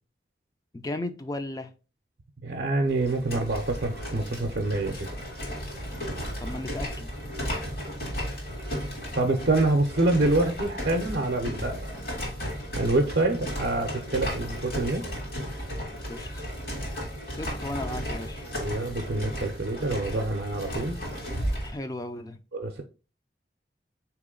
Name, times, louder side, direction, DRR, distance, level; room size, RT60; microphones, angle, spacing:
voice 1, 0.7-1.7 6.4-7.1 16.1-16.5 17.4-18.5 21.6-22.4, left 1 dB, 20° left, 0.3 m, -35 dB
voice 2, 2.4-5.1 9.2-11.9 12.8-15.0 18.6-21.0 22.5-22.8, right 2 dB, 70° right, 0.5 m, -26 dB
sound 1, 2.9-21.8, equal, 55° left, 1.7 m, -34 dB
4.0 x 2.9 x 3.7 m
head